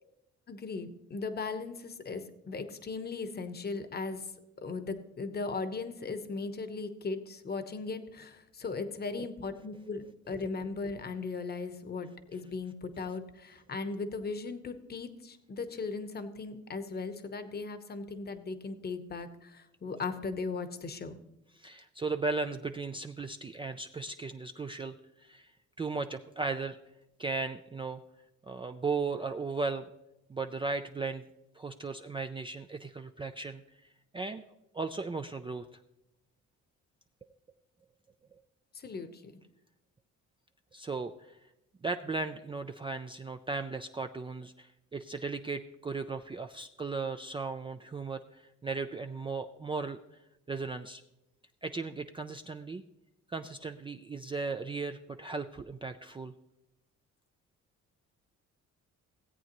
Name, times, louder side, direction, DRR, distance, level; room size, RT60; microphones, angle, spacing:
voice 1, 0.5-4.3 4.6-21.2 38.7-39.3, left 4 dB, 30° left, 10 dB, 0.9 m, -38 dB
voice 2, 21.6-25.5 25.8-26.8 27.2-28.0 28.4-29.8 30.3-31.2 31.5-33.6 34.1-34.4 34.7-35.7 38.3-38.4 40.7-41.4 41.8-50.0 50.5-51.0 51.6-52.8 53.3-56.3, right 4 dB, 15° right, 6 dB, 0.4 m, -36 dB
17.0 x 8.2 x 3.0 m, 0.91 s
cardioid pair, 90°, 30 cm